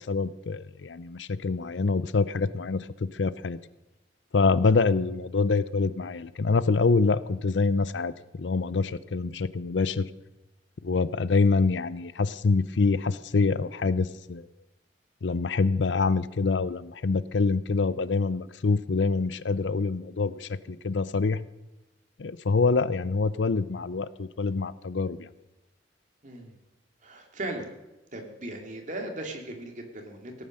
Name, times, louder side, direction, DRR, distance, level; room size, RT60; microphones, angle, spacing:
voice 1, 0.0-3.6 4.3-10.0 10.8-14.4 15.2-21.4 22.2-25.3, left 4 dB, 75° left, 17 dB, 0.6 m, -26 dB
voice 2, 26.2-26.5 27.0-27.7 28.1-30.5, right 1 dB, 45° right, 3 dB, 2.5 m, -37 dB
17.5 x 9.2 x 6.5 m, 1.0 s
head